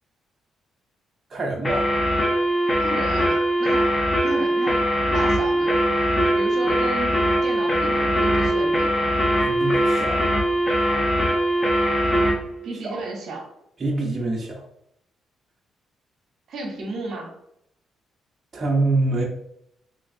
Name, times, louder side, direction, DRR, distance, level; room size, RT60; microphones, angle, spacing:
voice 1, 1.3-1.9 9.4-10.3 12.8-13.0 13.8-14.6 18.5-19.2, right 2 dB, 35° right, -2 dB, 0.7 m, -25 dB
sound 1, 1.6-12.4, equal, 25° left, 0.8 m, -21 dB
voice 2, 2.8-4.9 5.1-5.8 6.3-9.0 12.6-13.5 16.5-17.3, right 2 dB, 65° right, 0 dB, 0.8 m, -33 dB
3.2 x 2.8 x 2.6 m, 0.77 s
cardioid pair, 90°, 0 cm